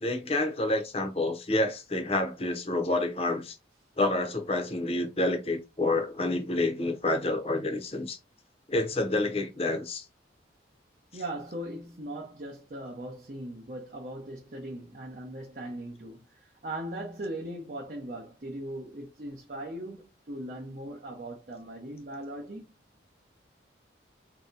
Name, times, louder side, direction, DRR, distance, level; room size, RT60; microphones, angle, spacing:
voice 1, 0.0-3.5 4.0-8.2 8.7-10.1, left 2 dB, 30° left, 0.6 m, -28 dB
voice 2, 11.1-22.6, right 1 dB, 45° right, 0.7 m, -39 dB
2.7 x 2.2 x 3.8 m
head